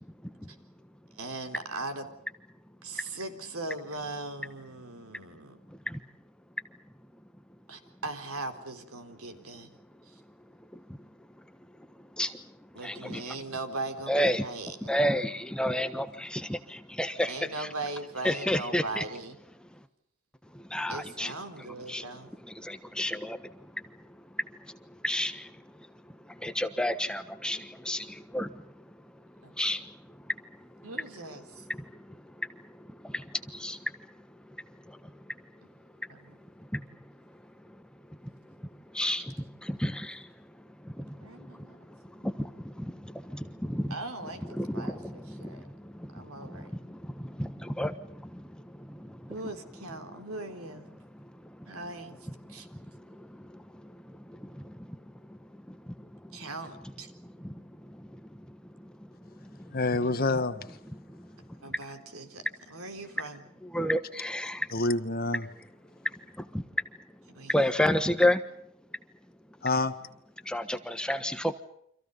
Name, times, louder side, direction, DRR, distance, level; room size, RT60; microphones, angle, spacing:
voice 1, 1.1-2.1 2.8-5.6 7.7-9.7 10.1-10.2 12.8-15.0 17.3-19.4 20.9-22.3 29.4-29.5 30.8-31.7 36.1-36.4 41.2-41.8 42.2-42.3 43.9-45.6 46.1-46.7 49.3-50.9 51.7-52.2 52.5-52.7 56.3-57.1 61.6-63.5 67.3-67.6, right 2 dB, 85° right, 7 dB, 3.9 m, -39 dB
voice 2, 5.7-6.0 10.7-11.1 12.0-12.5 12.8-13.3 14.1-14.4 14.8-17.7 18.2-19.0 20.5-21.3 21.6-22.0 22.4-29.1 29.6-30.9 31.7-35.7 36.0-36.1 36.6-37.4 37.7-37.8 38.2-44.0 44.4-49.4 51.1-51.8 52.4-56.4 56.8-56.9 57.2-59.8 60.9-61.8 63.6-64.7 66.0-66.8 67.5-68.4 70.4-71.6, left 1 dB, 5° left, 9 dB, 1.2 m, -33 dB
voice 3, 59.7-60.8 64.7-65.5 69.6-69.9, left 2 dB, 45° left, 10 dB, 1.7 m, -27 dB
30.0 x 26.0 x 5.4 m, 0.71 s
head